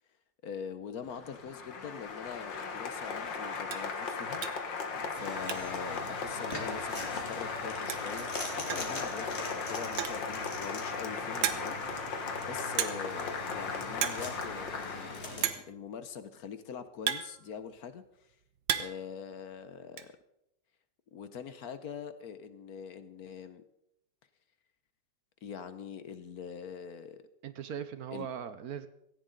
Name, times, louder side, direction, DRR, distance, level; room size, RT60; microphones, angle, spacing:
voice 1, 0.4-4.4 5.1-8.3 8.6-12.1 12.4-18.0 18.8-20.1 21.1-23.6 25.4-27.2 28.1-28.3, left 7 dB, 60° left, 12 dB, 1.2 m, -43 dB
Applause, 1.0-15.5, left 5 dB, 80° left, 2.2 m, -37 dB
sound 1, 2.7-2.9 3.3-3.4 3.7-3.9 4.4-4.7 5.0-5.9 6.1-6.2 6.5-6.6 7.6-7.7 7.9-8.2 8.7-9.0 9.8-10.3 10.9-11.0 11.4-11.9 12.8-13.2 13.5-13.7 13.9-14.3 14.5-14.6 15.4-15.8 16.6-17.9 18.3-19.1 19.3-20.1, right 9 dB, 90° right, 1.7 m, -34 dB
sound 2, 5.1-15.5, left 1 dB, 35° left, 2.7 m, -43 dB
voice 2, 27.4-28.9, right 8 dB, 60° right, 12 dB, 1.2 m, -40 dB
17.5 x 15.5 x 3.9 m, 0.80 s
omnidirectional pair, 2.0 m